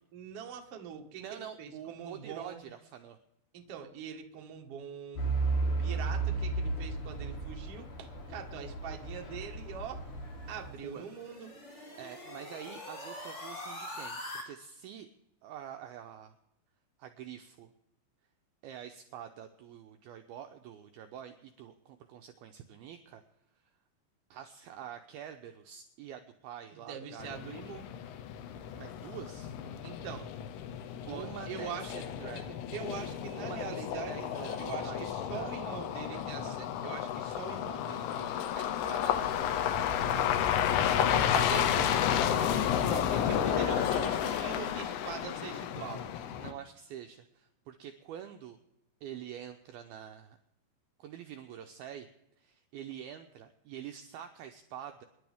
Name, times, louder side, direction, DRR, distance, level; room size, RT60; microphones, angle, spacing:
voice 1, 0.1-2.6 3.5-5.2 5.8-10.0 10.5-11.5 26.9-27.9 29.8-30.3 31.0-31.9 32.7-39.2 39.9-40.3 41.1-46.1, right 7 dB, 55° right, 3 dB, 1.6 m, -43 dB
voice 2, 1.2-3.2 10.8-11.0 12.0-15.1 15.4-16.4 17.0-17.7 18.6-23.2 24.3-27.4 28.7-29.6 31.1-32.6 33.4-36.6 43.3-44.6 46.4-48.6 49.0-50.4 51.0-52.1 52.4-55.0, right 9 dB, 80° right, 6 dB, 2.2 m, -46 dB
Truck / Idling, 5.2-10.7, right 3 dB, 45° left, 4.1 m, -34 dB
sound 1, 10.5-14.4, left 1 dB, 25° left, 1.6 m, -44 dB
sound 2, 27.2-46.5, left 9 dB, 85° left, 3.4 m, -32 dB
27.0 x 11.0 x 3.5 m, 0.86 s
omnidirectional pair, 5.2 m